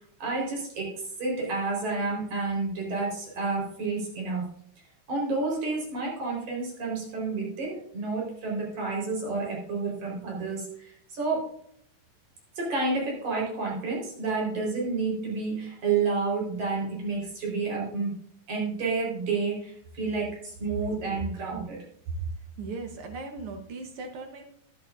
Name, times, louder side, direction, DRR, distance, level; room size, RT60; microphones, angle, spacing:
voice 1, 0.2-4.5 5.1-11.5 12.6-18.1 18.5-21.8, right 4 dB, 55° right, -2 dB, 5.5 m, -30 dB
voice 2, 22.6-24.5, right 3 dB, 80° right, 5 dB, 1.2 m, -38 dB
15.0 x 10.5 x 2.5 m, 0.66 s
omnidirectional pair, 4.1 m